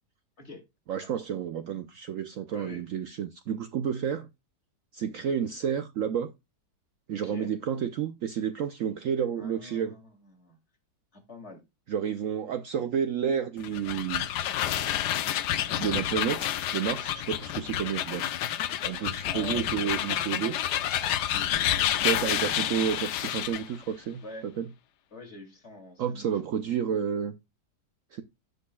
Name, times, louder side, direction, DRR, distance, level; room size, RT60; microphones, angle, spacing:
voice 1, 0.9-4.3 4.9-6.3 7.1-9.9 11.9-14.3 15.8-18.3 18.8-20.6 22.0-24.6 26.0-27.3 28.1-28.2, right 8 dB, 65° right, 0.8 m, -30 dB
voice 2, 2.5-2.9 7.1-7.5 9.4-10.6 11.1-11.6 19.2-20.4 21.0-22.0 24.2-24.5 25.1-26.3, left 3 dB, 40° left, 2.7 m, -45 dB
sound 1, 13.6-23.7, left 11 dB, 80° left, 1.3 m, -29 dB
16.0 x 5.3 x 2.2 m
omnidirectional pair, 1.8 m